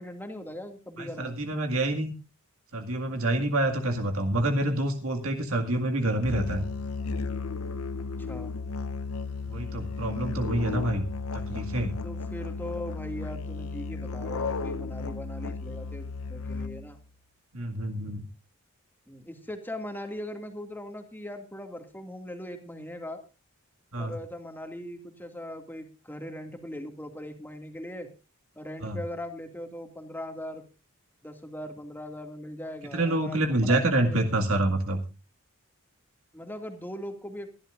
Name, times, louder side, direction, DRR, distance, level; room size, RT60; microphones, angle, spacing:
voice 1, 0.0-1.4 8.2-8.5 12.0-17.0 19.1-23.2 24.0-28.1 28.5-30.6 31.2-34.2 36.3-37.5, left 1 dB, 10° left, 5 dB, 2.2 m, -40 dB
voice 2, 1.0-2.1 2.7-6.7 9.5-11.1 11.3-11.9 17.5-18.3 23.9-24.1 28.8-29.0 32.9-35.0, right 1 dB, 70° right, 4 dB, 2.1 m, -27 dB
Musical instrument, 6.2-17.0, left 4 dB, 80° left, 0.9 m, -34 dB
24.0 x 11.5 x 2.5 m, 0.30 s
head